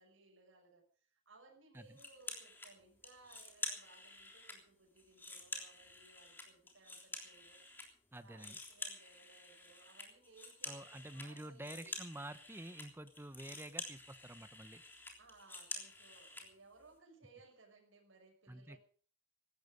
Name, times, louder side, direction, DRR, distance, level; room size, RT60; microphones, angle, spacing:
voice 1, 0.0-7.6 8.1-11.9 15.2-18.8, right 3 dB, 75° right, 0 dB, 6.0 m, -63 dB
sound 1, 2.0-2.7 3.0-4.6 5.0-7.9 8.1-16.5, left 2 dB, 10° left, 3.4 m, -48 dB
voice 2, 8.1-8.6 10.6-14.8 18.5-18.8, right 1 dB, 10° right, 13 dB, 0.8 m, -49 dB
17.5 x 13.5 x 5.2 m, 0.43 s
head